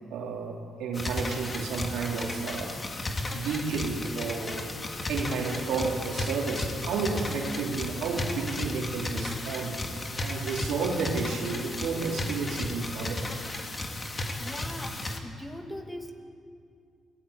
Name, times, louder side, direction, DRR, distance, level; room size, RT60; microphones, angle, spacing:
voice 1, 0.1-2.8 3.3-4.7 5.1-13.2, right 4 dB, 85° right, 0 dB, 3.9 m, -32 dB
sound 1, 0.9-15.2, left 2 dB, 30° left, 2.7 m, -34 dB
voice 2, 14.4-16.1, equal, 10° left, 4 dB, 2.5 m, -40 dB
27.5 x 18.5 x 8.6 m, 2.3 s
cardioid pair, 90°, 0 cm